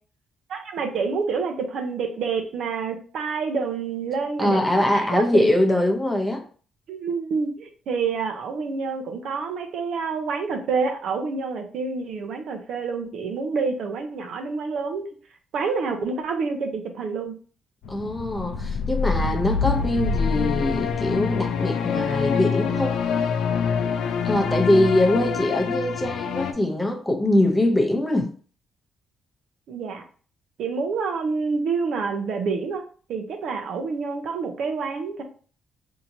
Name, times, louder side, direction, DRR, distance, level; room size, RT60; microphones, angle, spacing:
voice 1, 0.5-5.6 6.9-15.1 15.5-17.3 29.7-30.0 30.6-32.8 33.1-35.2, right 5 dB, 70° right, 0.7 m, -28 dB
voice 2, 4.4-6.4 17.9-23.0 24.2-28.3, left 1 dB, 10° left, 0.7 m, -22 dB
sound 1, 17.8-26.5, left 6 dB, 80° left, 0.4 m, -25 dB
4.3 x 2.8 x 2.7 m
cardioid pair, 90°, 0 cm